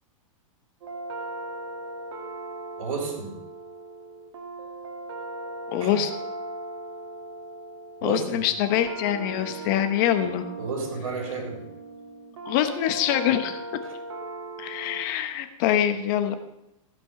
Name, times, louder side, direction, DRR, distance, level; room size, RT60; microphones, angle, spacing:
sound 1, 0.8-15.1, right 2 dB, 60° right, 1.9 m, -38 dB
voice 1, 2.8-3.4 5.8-5.9 8.0-8.4 10.6-11.6, right 4 dB, 85° right, 2 dB, 3.7 m, -32 dB
voice 2, 5.7-6.1 8.0-10.4 12.5-13.6 14.6-16.5, left 11 dB, 35° left, 8 dB, 0.9 m, -24 dB
15.5 x 5.3 x 7.6 m, 0.89 s
supercardioid pair, 165°, 17 cm